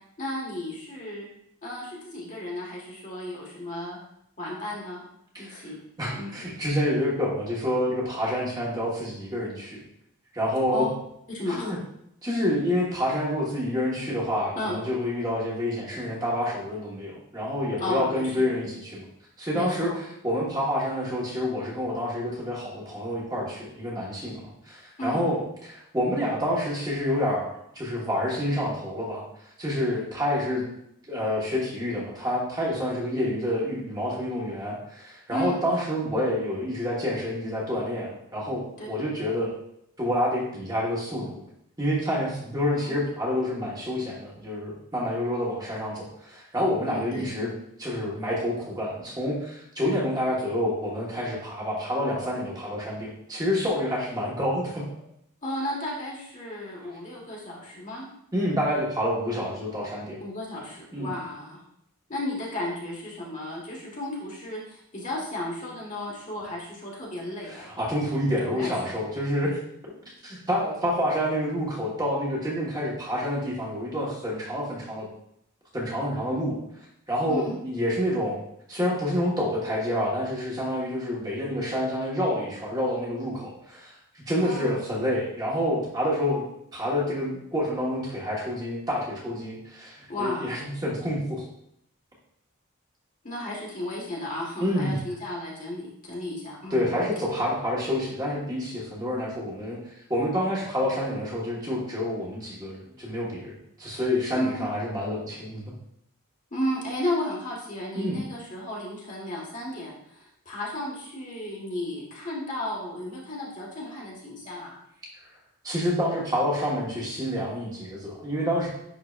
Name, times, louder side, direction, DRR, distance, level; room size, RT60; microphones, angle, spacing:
voice 1, 0.2-1.3 1.6-4.0 4.4-5.0 5.4-5.8 6.1-6.3 10.7-10.9 11.3-11.7 14.5-14.7 17.8-18.0 18.4-18.5 19.5-20.0 25.0-25.2 35.3-35.6 38.8-38.9 42.7-42.9 46.8-47.3 55.4-58.1 60.2-61.6 62.1-67.7 68.4-68.8 77.3-77.6 84.4-84.7 90.1-90.6 93.2-97.0 104.4-104.7 106.5-114.8, left 1 dB, 35° left, -3 dB, 1.5 m, -33 dB
voice 2, 5.3-5.7 6.0-9.8 10.3-10.9 11.5-11.8 12.2-19.0 19.4-19.9 20.2-29.2 29.6-30.6 31.1-39.5 40.0-41.4 41.8-47.5 47.8-54.9 58.3-60.2 60.9-61.1 67.4-69.6 70.2-75.1 75.7-76.6 77.1-78.4 78.7-86.4 86.7-91.4 94.6-95.0 96.7-99.8 100.1-105.7 107.9-108.2 115.6-118.7, left 1 dB, 20° right, -5 dB, 1.4 m, -28 dB
10.5 x 3.9 x 2.5 m, 0.75 s
head